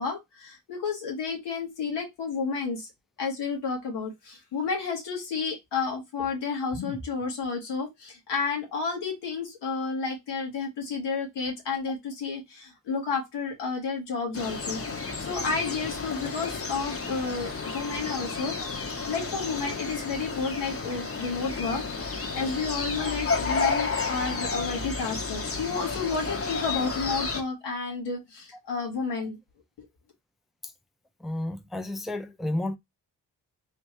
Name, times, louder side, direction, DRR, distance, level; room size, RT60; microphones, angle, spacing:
voice 1, 0.0-2.9 3.2-29.4, left 5 dB, 85° left, 1.5 m, -31 dB
sound 1, 14.3-27.4, left 4 dB, 35° left, 1.0 m, -32 dB
voice 2, 31.2-32.8, left 1 dB, ahead, 0.5 m, -31 dB
3.3 x 3.0 x 3.0 m
supercardioid pair, 45°, 41 cm